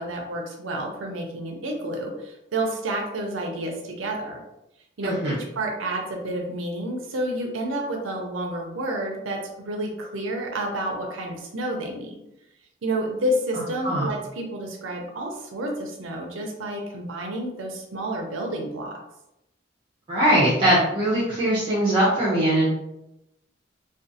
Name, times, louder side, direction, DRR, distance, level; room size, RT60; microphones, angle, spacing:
voice 1, 0.0-4.4 5.0-12.2 12.8-19.0, right 1 dB, 90° right, 1 dB, 0.5 m, -30 dB
voice 2, 5.0-5.3 13.8-14.1 20.1-22.7, right 1 dB, 25° right, -9 dB, 0.5 m, -21 dB
2.5 x 2.3 x 2.6 m, 0.86 s
head